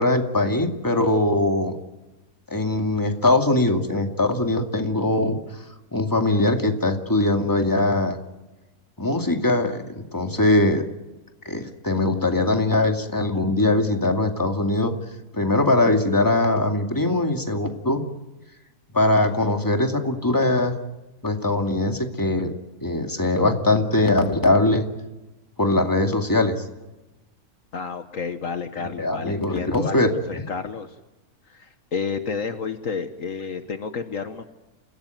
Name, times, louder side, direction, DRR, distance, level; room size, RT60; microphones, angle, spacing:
voice 1, 0.0-1.8 2.5-5.4 5.9-8.2 9.0-10.8 11.5-14.9 15.3-18.0 18.9-20.7 21.2-24.9 25.6-26.6 29.0-30.4, left 2 dB, 15° left, 5 dB, 2.3 m, -21 dB
voice 2, 27.7-30.0 30.5-30.9 31.5-34.4, left 5 dB, 60° left, 9 dB, 1.5 m, -30 dB
28.5 x 17.0 x 9.2 m, 1.1 s
omnidirectional pair, 1.6 m